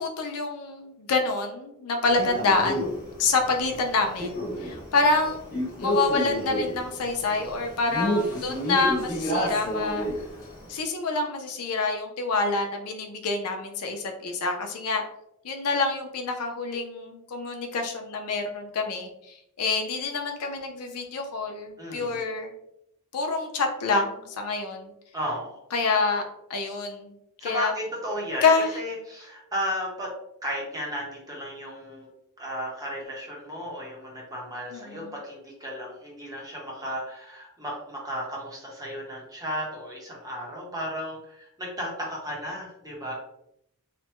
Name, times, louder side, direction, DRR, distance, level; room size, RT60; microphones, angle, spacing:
voice 1, 0.0-5.4 5.8-10.1 10.7-15.0 15.4-22.5 23.1-24.9 25.7-26.2 26.5-27.1 27.4-27.7 28.4-28.7 34.7-35.1, left 3 dB, 80° left, 4 dB, 0.5 m, -27 dB
Male speech man speaking, 2.1-10.7, equal, 40° left, 1.3 m, -30 dB
voice 2, 21.8-22.2 25.1-25.6 27.4-28.4 28.7-30.1 30.4-32.1 32.4-43.1, equal, 15° right, -3 dB, 0.8 m, -34 dB
3.2 x 2.1 x 3.0 m, 0.79 s
head